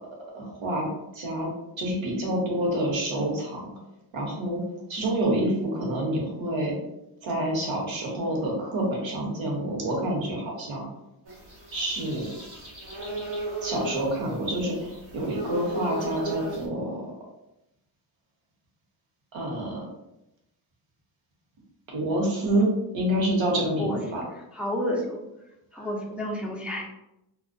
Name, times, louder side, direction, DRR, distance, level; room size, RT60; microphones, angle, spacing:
voice 1, 0.3-0.9 1.1-1.5 1.8-3.7 4.1-4.6 4.9-6.7 7.2-10.9 11.7-12.3 13.6-17.0 19.3-19.9 21.9-24.2 25.8-25.9, right 1 dB, 65° right, -2 dB, 1.0 m, -27 dB
sound 1, 11.3-16.6, right 2 dB, 85° right, 1.0 m, -36 dB
voice 2, 24.3-25.2 25.7-26.8, left 1 dB, 5° right, -2 dB, 0.3 m, -31 dB
2.3 x 2.1 x 2.5 m, 0.88 s
cardioid pair, 80°, 49 cm